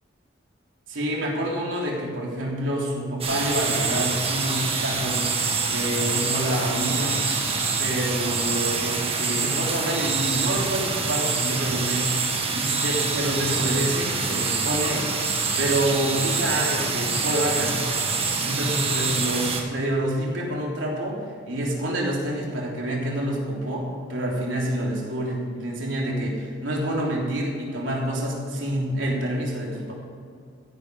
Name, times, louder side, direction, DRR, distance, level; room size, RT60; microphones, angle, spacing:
voice 1, 0.9-5.2 5.7-7.2 7.8-12.1 12.5-15.0 15.6-17.8 18.4-21.2 21.5-29.9, right 1 dB, 90° right, -2 dB, 3.4 m, -27 dB
sound 1, 3.2-19.6, right 4 dB, 30° right, 1.6 m, -26 dB
15.0 x 10.5 x 4.9 m, 2.3 s
head